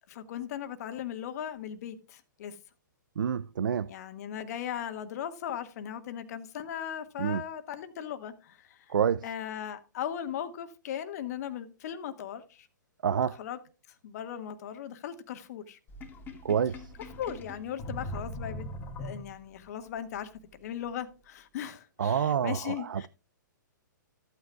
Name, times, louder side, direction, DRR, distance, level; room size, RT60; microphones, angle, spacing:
voice 1, 0.1-2.6 3.9-9.0 9.2-12.7 13.4-13.6 14.0-15.8 17.2-18.7 19.0-23.1, left 9 dB, 50° left, 1.5 m, -38 dB
voice 2, 3.2-3.9 7.2-7.4 8.9-9.3 13.0-13.4 16.4-16.9 22.0-23.1, right 8 dB, 75° right, 0.4 m, -28 dB
Sink (filling or washing), 15.9-19.6, left 1 dB, 20° left, 1.7 m, -41 dB
14.5 x 9.1 x 2.3 m
hypercardioid pair, 125°, 11 cm